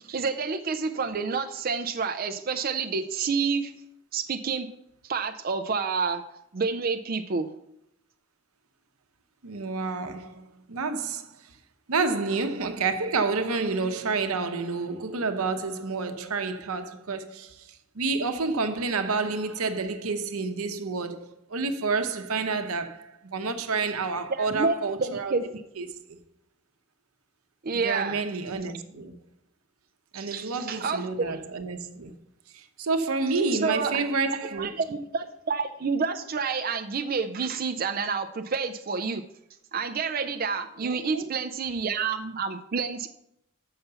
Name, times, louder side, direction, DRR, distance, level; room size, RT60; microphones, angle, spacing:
voice 1, 0.0-3.8 4.1-4.7 5.0-6.2 6.5-7.5 24.3-25.4 27.6-28.2 30.1-31.4 33.5-34.0 34.6-39.3 39.7-43.1, right 5 dB, 45° right, 0.4 m, -29 dB
voice 2, 9.4-11.6 11.9-25.3 25.8-26.2 27.7-29.2 30.1-32.1 32.5-34.7 40.8-41.3, right 4 dB, 85° right, 0.8 m, -29 dB
6.8 x 5.7 x 6.8 m
head